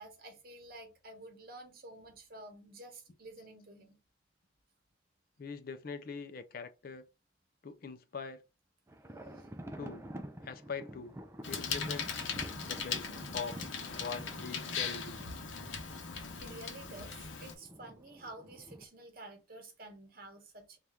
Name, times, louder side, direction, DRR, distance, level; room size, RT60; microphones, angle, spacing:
voice 1, 0.0-4.0 9.3-9.5 16.4-20.8, right 2 dB, 50° right, 1.1 m, -50 dB
voice 2, 5.4-7.1 7.6-8.4 9.8-10.1 10.4-11.1 11.5-12.2 12.6-13.1 13.3-13.6 14.0-15.2, left 5 dB, 50° left, 0.5 m, -42 dB
sound 1, 8.9-18.9, right 1 dB, 15° right, 0.4 m, -49 dB
Bicycle, 11.4-17.5, left 6 dB, 85° left, 0.8 m, -39 dB
3.4 x 2.4 x 4.3 m
head